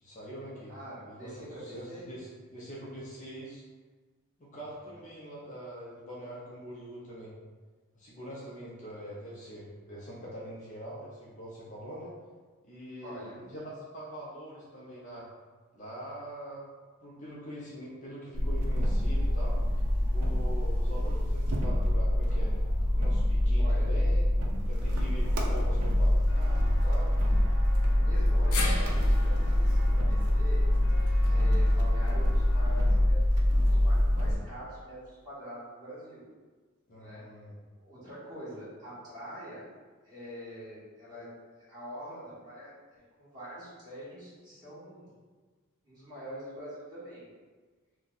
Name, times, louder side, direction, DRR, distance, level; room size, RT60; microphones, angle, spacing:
voice 1, 0.0-0.8 1.1-3.6 4.4-7.3 7.9-12.1 12.6-15.3 15.7-16.7 17.0-19.6 20.1-22.5 22.9-24.2 24.7-26.1 26.3-27.1 36.9-37.5, equal, 35° left, -7 dB, 0.6 m, -43 dB
voice 2, 0.7-2.0 13.0-13.4 23.6-23.9 25.2-25.7 28.0-30.6 31.3-33.2 33.5-36.2 36.9-37.2 37.8-39.7 40.0-41.3 41.6-45.1 45.8-47.3, equal, 20° right, -12 dB, 1.4 m, -45 dB
sound 1, 18.3-34.3, left 1 dB, 75° right, 0.5 m, -25 dB
Walk footsteps, 26.3-33.0, equal, 65° left, 0.9 m, -45 dB
sound 2, 28.5-32.8 33.1-33.2 34.4-34.5, left 3 dB, 85° left, 0.5 m, -40 dB
2.6 x 2.3 x 3.9 m, 1.4 s
head